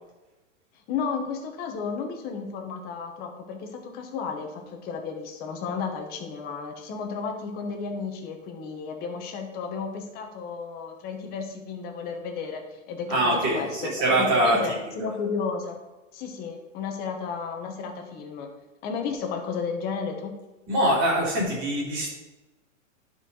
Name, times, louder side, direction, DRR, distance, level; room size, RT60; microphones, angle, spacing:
voice 1, 0.9-13.9 14.2-15.8 16.1-18.5 18.8-20.3, left 5 dB, 25° left, 3 dB, 1.0 m, -33 dB
voice 2, 13.1-14.6 15.0-15.1 20.7-22.1, right 1 dB, 30° right, -4 dB, 2.7 m, -23 dB
10.5 x 4.8 x 3.9 m, 1.1 s
hypercardioid pair, 155°, 40 cm